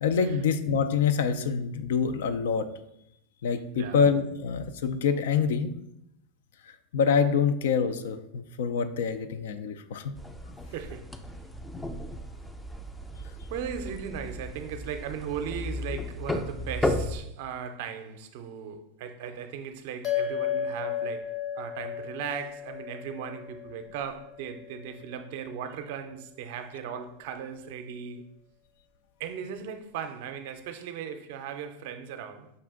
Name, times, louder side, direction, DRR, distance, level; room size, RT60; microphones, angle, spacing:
voice 1, 0.0-2.7 3.4-5.7 6.9-10.1, left 6 dB, 75° left, 0.4 m, -26 dB
sound 1, 10.2-17.2, left 1 dB, 10° left, 0.4 m, -34 dB
voice 2, 10.7-11.1 13.5-28.2 29.2-32.5, right 7 dB, 65° right, 0.5 m, -37 dB
sound 2, 20.0-24.7, left 8 dB, 45° left, 0.9 m, -34 dB
5.4 x 2.5 x 3.6 m
hypercardioid pair, 105°, 0 cm